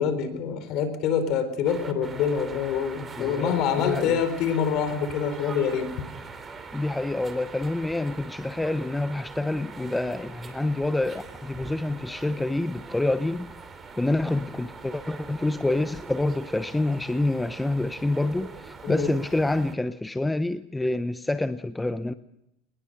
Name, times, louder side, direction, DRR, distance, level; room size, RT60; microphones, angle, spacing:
voice 1, 0.0-5.9 18.8-19.1, left 7 dB, 55° left, 11 dB, 4.1 m, -26 dB
sound 1, 1.6-19.7, right 4 dB, 20° right, 3.0 m, -42 dB
voice 2, 3.2-4.2 6.7-13.5 14.0-22.1, left 2 dB, 10° left, 12 dB, 0.7 m, -27 dB
22.0 x 20.0 x 6.6 m, 0.81 s
supercardioid pair, 115°, 0 cm